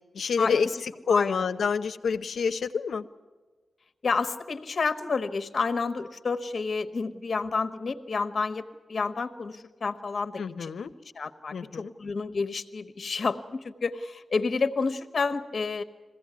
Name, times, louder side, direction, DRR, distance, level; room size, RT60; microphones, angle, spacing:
voice 1, 0.1-3.0 10.4-10.9 11.5-11.9, left 5 dB, 75° left, 10 dB, 0.8 m, -28 dB
voice 2, 4.0-8.6 8.9-10.7 11.2-15.8, left 4 dB, 45° left, 10 dB, 1.1 m, -29 dB
22.0 x 16.0 x 9.6 m, 1.3 s
wide cardioid pair, 170°, 0 cm